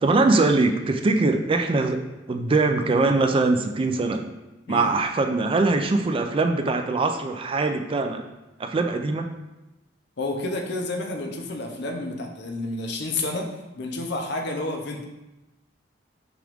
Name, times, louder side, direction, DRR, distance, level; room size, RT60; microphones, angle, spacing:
voice 1, 0.0-4.2 4.7-8.2 8.6-9.3, right 3 dB, 30° right, 6 dB, 0.3 m, -22 dB
voice 2, 10.2-15.0, left 2 dB, 65° left, 2 dB, 0.7 m, -30 dB
5.9 x 2.5 x 3.5 m, 0.99 s
head